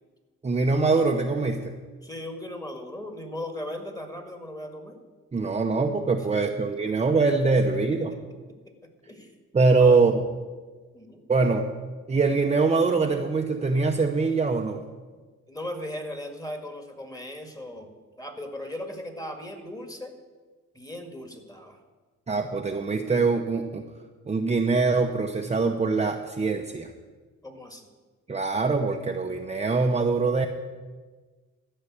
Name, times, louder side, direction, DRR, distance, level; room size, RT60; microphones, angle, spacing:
voice 1, 0.4-1.7 5.3-8.1 9.5-10.2 11.3-11.6 12.1-14.8 22.3-23.8 24.3-26.9 28.3-30.5, right 4 dB, 20° right, 3 dB, 0.8 m, -23 dB
voice 2, 2.0-5.0 7.6-7.7 8.6-9.3 9.7-10.0 10.9-11.2 15.5-17.9 18.2-20.1 20.7-21.8 27.4-27.9, left 1 dB, 10° left, 6 dB, 1.9 m, -38 dB
13.5 x 5.6 x 8.7 m, 1.4 s
cardioid pair, 90°, 30 cm